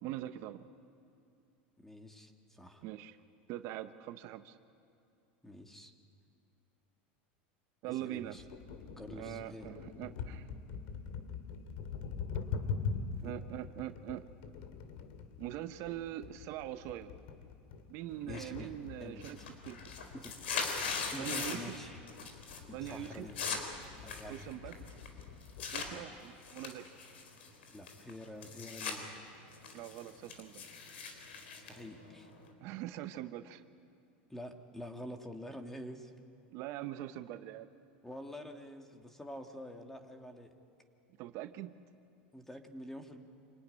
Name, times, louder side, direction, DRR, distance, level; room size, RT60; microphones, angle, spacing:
voice 1, 0.0-0.7 2.8-3.2 3.5-4.6 7.8-8.4 9.1-10.5 13.2-14.2 15.4-17.1 17.9-19.4 19.6-19.8 21.2-21.8 22.7-23.3 24.3-24.8 25.7-26.9 29.7-30.6 32.6-33.6 36.5-37.7 41.2-41.7, right 13 dB, 55° right, 10 dB, 1.0 m, -42 dB
voice 2, 1.8-2.8 5.4-5.9 8.0-8.4 9.0-9.7 13.2-13.3 18.3-18.7 19.0-19.2 20.1-20.4 21.1-22.0 22.7-23.4 24.0-24.5 25.9-26.0 27.7-29.2 31.6-32.3 34.3-36.1 38.0-40.5 42.3-43.2, left 1 dB, 5° left, 4 dB, 2.2 m, -47 dB
sound 1, 8.4-26.0, left 5 dB, 65° left, 2.5 m, -44 dB
sound 2, 18.3-18.8 19.1-21.8 22.1-22.6 22.9-25.9 26.4-29.0 29.3-32.5, left 5 dB, 90° left, 4.0 m, -40 dB
26.5 x 19.0 x 9.9 m, 2.7 s
supercardioid pair, 115°, 6 cm